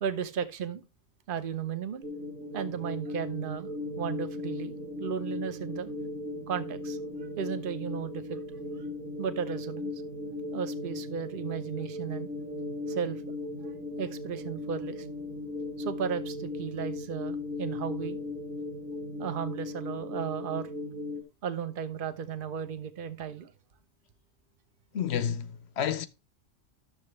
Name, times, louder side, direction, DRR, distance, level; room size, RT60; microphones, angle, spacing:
voice 1, 0.0-0.8 1.3-2.1 2.5-3.7 4.0-4.7 5.0-5.9 6.5-7.0 7.4-8.4 9.2-9.9 10.5-12.3 12.9-13.4 14.0-15.1 15.8-18.2 19.2-20.7 21.4-23.5, right 7 dB, 50° right, 1.0 m, -34 dB
sound 1, 2.0-21.2, left 2 dB, 85° right, 1.9 m, -37 dB
voice 2, 24.9-26.1, left 8 dB, 60° left, 0.9 m, -30 dB
11.5 x 6.9 x 3.2 m
omnidirectional pair, 1.3 m